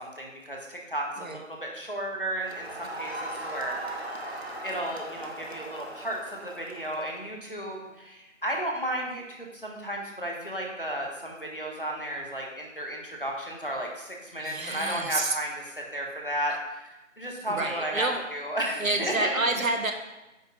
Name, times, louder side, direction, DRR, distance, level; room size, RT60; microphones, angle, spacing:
voice 1, 0.0-4.0 4.6-16.9 17.2-19.3, right 1 dB, 40° left, -1 dB, 1.4 m, -33 dB
Crowd, 2.4-7.2, right 1 dB, 50° right, 1.0 m, -39 dB
voice 2, 14.4-15.3 17.5-18.2 18.8-19.9, right 2 dB, 85° right, 5 dB, 1.2 m, -29 dB
9.0 x 3.4 x 5.3 m, 1.0 s
figure-of-eight pair, 180°, 40 cm